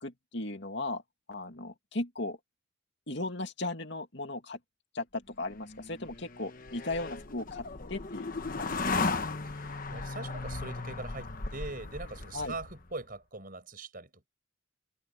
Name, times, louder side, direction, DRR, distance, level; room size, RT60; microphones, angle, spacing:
voice 1, 0.0-1.0 1.3-2.4 3.1-4.6 4.9-8.8 12.3-12.5, left 2 dB, 60° left, 2.6 m, -37 dB
sound 1, 5.5-12.9, left 3 dB, 45° left, 1.1 m, -36 dB
voice 2, 9.4-14.3, right 3 dB, 45° right, 6.2 m, -42 dB
open air
head